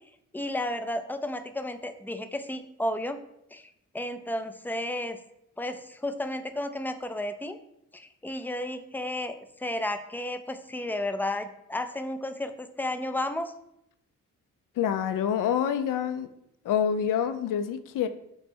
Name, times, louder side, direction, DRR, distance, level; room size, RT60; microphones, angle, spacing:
voice 1, 0.3-3.2 3.5-3.7 3.9-5.2 5.6-7.6 7.9-13.5, left 1 dB, 5° left, 8 dB, 0.3 m, -32 dB
voice 2, 14.8-16.3 16.6-18.1, left 8 dB, 65° left, 10 dB, 0.5 m, -27 dB
3.3 x 3.1 x 4.3 m, 0.77 s
cardioid pair, 65°, 34 cm